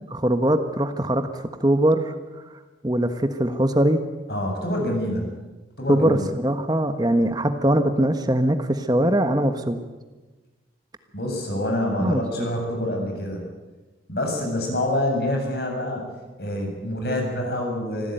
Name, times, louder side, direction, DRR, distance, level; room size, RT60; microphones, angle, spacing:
voice 1, 0.1-2.1 2.8-4.0 5.9-9.8 12.0-12.5, right 1 dB, 25° right, 8 dB, 1.3 m, -21 dB
voice 2, 4.3-5.3 5.8-6.3 11.1-13.5 14.1-16.1 16.4-18.1, left 1 dB, 65° left, 2 dB, 7.5 m, -26 dB
25.0 x 16.0 x 9.2 m, 1.2 s
head